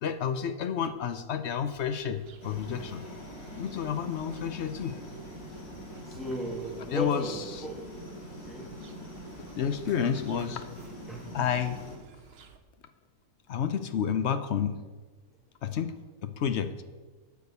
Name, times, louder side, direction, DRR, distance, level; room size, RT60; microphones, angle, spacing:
voice 1, 0.0-3.0 3.6-5.0 5.5-5.6 6.1-6.2 6.9-7.4 9.6-10.7 11.3-11.8 13.5-14.8 15.6-15.9 16.2-16.7, left 8 dB, 60° left, 10 dB, 0.8 m, -30 dB
sound 1, 1.6-12.6, right 5 dB, 50° right, 0.8 m, -54 dB
sound 2, 2.4-12.0, equal, 85° left, 2.7 m, -44 dB
voice 2, 6.1-7.9 8.3-8.8 11.1-11.3, equal, ahead, -1 dB, 1.8 m, -36 dB
11.5 x 4.8 x 8.0 m, 1.3 s
omnidirectional pair, 1.6 m